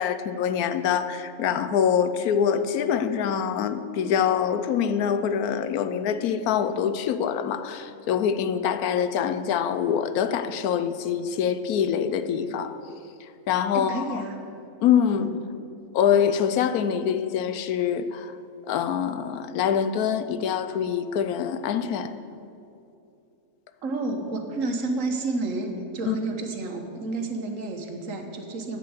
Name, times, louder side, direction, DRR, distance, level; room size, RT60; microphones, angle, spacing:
voice 1, 0.0-12.8 13.2-14.2 14.8-15.3 15.9-18.4 18.7-22.1 26.1-26.2, left 8 dB, 80° left, 11 dB, 1.1 m, -25 dB
voice 2, 13.7-14.4 15.1-15.3 23.8-28.8, right 2 dB, 60° right, 4 dB, 1.5 m, -30 dB
9.1 x 8.3 x 7.9 m, 2.7 s
omnidirectional pair, 1.5 m